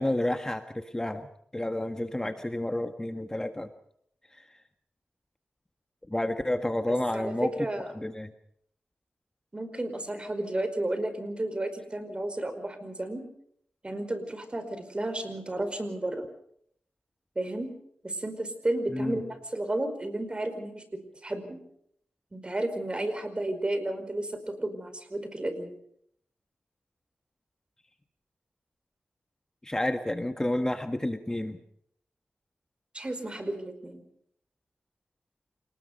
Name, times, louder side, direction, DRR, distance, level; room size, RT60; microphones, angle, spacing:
voice 1, 0.0-3.7 4.3-4.5 6.1-7.5 7.9-8.3 18.9-19.2 29.6-31.6, left 1 dB, 15° left, 8 dB, 1.6 m, -30 dB
voice 2, 7.1-8.1 9.5-13.2 13.8-16.2 17.3-17.7 18.0-19.2 19.5-20.8 21.2-21.6 22.3-25.7 32.9-34.0, right 1 dB, 30° right, 9 dB, 5.1 m, -32 dB
28.0 x 19.5 x 5.4 m, 0.68 s
cardioid pair, 60°, 3 cm